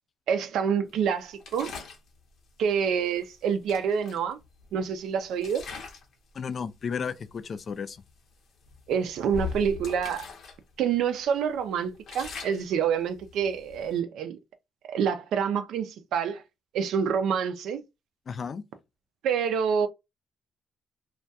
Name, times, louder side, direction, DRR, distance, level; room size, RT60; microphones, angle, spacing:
voice 1, 0.3-1.7 2.6-4.4 4.7-5.6 8.9-10.3 10.8-14.4 14.9-16.4 16.7-17.8 19.2-19.9, right 7 dB, 80° right, 0.3 m, -27 dB
sound 1, 1.4-2.1 3.2-3.3 3.7-4.9 5.4-6.1 6.5-6.8 7.4-7.5 7.9-8.1 8.6-10.6 10.9-11.0 11.5-14.0, left 4 dB, 70° left, 0.7 m, -40 dB
voice 2, 6.3-8.0 18.3-18.6, left 6 dB, 50° left, 0.3 m, -33 dB
2.2 x 2.2 x 2.6 m
cardioid pair, 90°, 0 cm